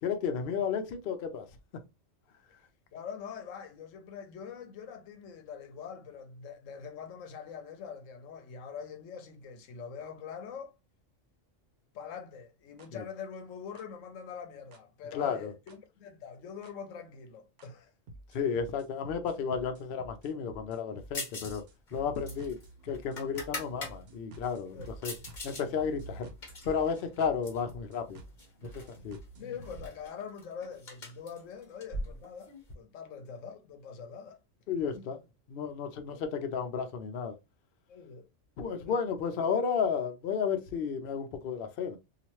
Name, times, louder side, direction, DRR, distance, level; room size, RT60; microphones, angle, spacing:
voice 1, 0.0-1.5 12.9-13.0 15.1-15.5 18.3-21.6 21.9-22.6 22.8-25.1 25.4-26.3 26.6-28.2 28.6-29.2 34.7-35.2 35.5-37.4 38.6-42.0, left 6 dB, 60° left, 0.7 m, -32 dB
voice 2, 2.9-10.7 11.9-17.9 22.0-22.2 24.7-25.1 29.4-34.4 34.9-35.0 36.1-36.2 37.9-38.3, left 6 dB, 80° left, 1.0 m, -44 dB
sound 1, 12.8-12.9 13.8-13.9 14.7-14.8 15.7-15.8 16.6-16.7 17.6-17.7 18.1-29.9, right 2 dB, 60° right, 0.8 m, -49 dB
sound 2, 21.1-21.6 21.9-23.9 24.4-25.6 26.0-27.7 28.4-29.0 29.2-29.3 29.6-32.7, left 2 dB, 40° left, 1.1 m, -42 dB
2.9 x 2.4 x 2.9 m
omnidirectional pair, 1.3 m